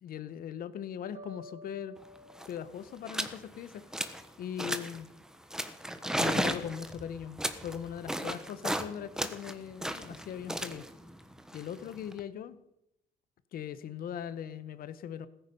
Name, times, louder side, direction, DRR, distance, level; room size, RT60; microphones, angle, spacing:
voice 1, 0.0-2.0 2.5-3.9 4.4-5.1 6.2-10.9 11.5-12.6 13.5-15.3, left 9 dB, 60° left, 14 dB, 1.1 m, -40 dB
sound 1, 1.1-4.2, left 1 dB, 45° right, 1.8 m, -53 dB
sound 2, 2.0-2.1 2.3-2.6 3.1-3.4 3.7-4.3 4.6-5.0 5.5-8.9 9.2-12.2, equal, 5° right, 1.3 m, -34 dB
16.0 x 14.0 x 5.4 m, 0.81 s
cardioid pair, 110°, 17 cm